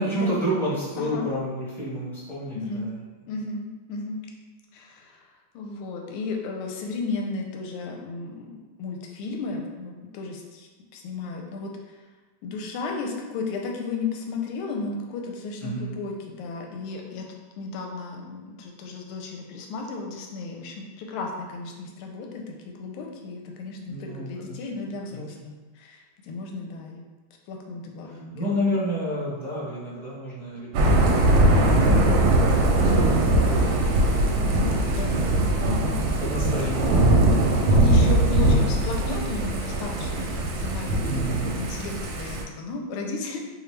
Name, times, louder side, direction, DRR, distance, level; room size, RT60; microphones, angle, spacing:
voice 1, 0.0-3.3 15.6-15.9 23.9-24.7 25.1-25.3 28.0-32.1 32.5-34.3 35.6-37.0 41.0-41.6, equal, ahead, -9 dB, 0.6 m, -31 dB
voice 2, 2.5-2.9 3.3-4.3 4.7-5.1 5.5-11.7 12.4-17.2 17.6-27.0 27.5-28.4 28.6-28.7 29.3-29.4 35.0-35.8 37.7-41.2 41.5-43.4, left 3 dB, 90° left, 1 dB, 1.5 m, -34 dB
Thunder / Rain, 30.7-42.4, right 1 dB, 75° right, 1.2 m, -21 dB
4.2 x 2.6 x 3.2 m, 1.3 s
omnidirectional pair, 2.3 m